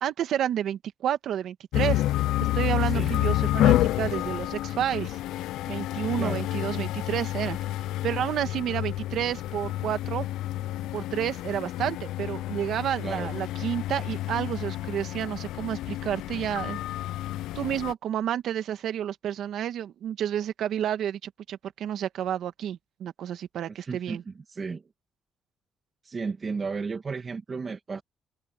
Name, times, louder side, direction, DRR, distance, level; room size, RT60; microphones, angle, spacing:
voice 1, 0.0-2.0 2.5-5.2 5.7-7.6 8.0-10.3 10.9-16.8 17.6-24.2, right 10 dB, 75° right, 1.7 m, -30 dB
sound 1, 1.7-17.9, left 15 dB, 90° left, 0.5 m, -29 dB
voice 2, 23.7-24.8 26.0-28.0, right 4 dB, 35° right, 2.2 m, -34 dB
cardioid pair, 90°, 0 cm